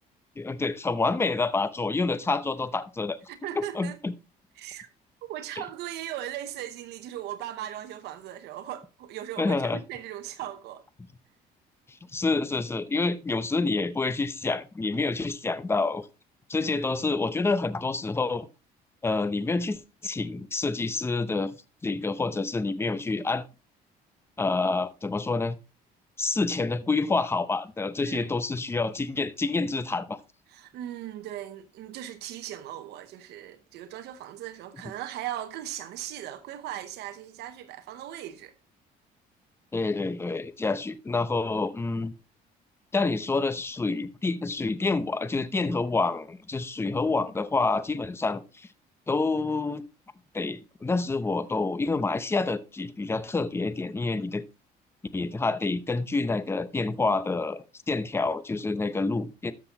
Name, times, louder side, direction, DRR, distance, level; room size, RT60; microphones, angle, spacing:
voice 1, 0.4-3.2 3.6-4.1 5.6-5.7 9.4-9.8 12.1-16.1 16.5-18.5 19.0-21.5 21.8-23.4 24.4-25.5 26.2-30.2 39.7-42.1 42.9-48.7 49.1-49.8 50.3-54.4 55.1-59.5, left 3 dB, 15° left, 0.7 m, -28 dB
voice 2, 3.3-4.0 4.6-4.9 5.2-10.8 28.0-28.3 30.5-38.5, right 12 dB, 80° right, 0.9 m, -38 dB
13.5 x 6.0 x 2.9 m
cardioid pair, 110°, 17 cm